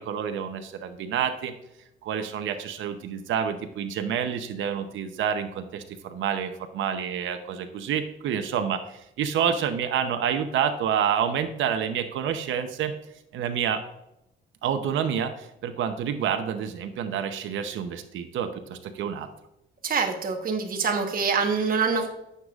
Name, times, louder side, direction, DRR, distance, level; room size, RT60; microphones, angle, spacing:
voice 1, 0.0-1.5 2.0-12.9 13.3-13.8 14.6-19.3, right 8 dB, 75° right, 7 dB, 0.8 m, -28 dB
voice 2, 19.8-22.1, right 5 dB, 45° right, 3 dB, 1.2 m, -25 dB
9.5 x 6.8 x 2.4 m, 0.85 s
cardioid pair, 90°, 20 cm